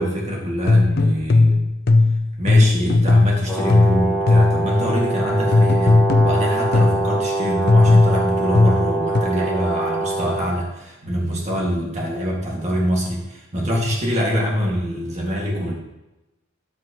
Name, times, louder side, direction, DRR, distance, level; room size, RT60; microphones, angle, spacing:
voice 1, 0.0-1.6 2.4-15.7, equal, 35° right, -2 dB, 2.0 m, -24 dB
sound 1, 0.7-4.7 5.5-7.1 7.7-9.2, left 3 dB, 50° left, 0.5 m, -16 dB
Brass instrument, 3.5-10.5, right 2 dB, ahead, 2.4 m, -24 dB
9.4 x 7.6 x 3.0 m, 0.99 s
head